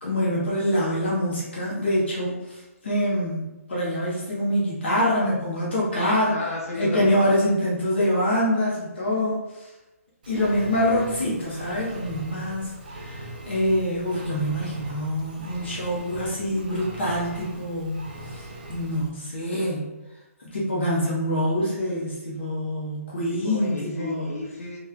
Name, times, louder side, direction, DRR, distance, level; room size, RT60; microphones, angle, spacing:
voice 1, 0.0-6.4 6.8-9.7 10.3-19.9 20.5-24.3, equal, 45° left, -6 dB, 0.9 m, -25 dB
voice 2, 6.3-7.2 23.3-24.8, left 2 dB, 75° left, -1 dB, 1.1 m, -33 dB
Engine, 10.2-19.1, right 1 dB, 35° right, 0.4 m, -40 dB
3.0 x 2.2 x 3.6 m, 1.0 s
hypercardioid pair, 180°, 8 cm